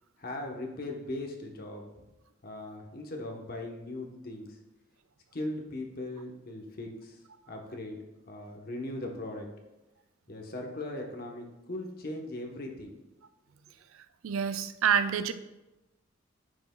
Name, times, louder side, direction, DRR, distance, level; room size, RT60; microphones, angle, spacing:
voice 1, 0.2-2.0 2.4-4.6 5.3-7.2 7.5-8.0 8.3-9.5 10.3-12.9, left 1 dB, 45° left, 2 dB, 1.0 m, -39 dB
voice 2, 14.2-15.3, right 7 dB, 85° right, 11 dB, 0.4 m, -27 dB
9.7 x 5.9 x 2.3 m, 1.0 s
head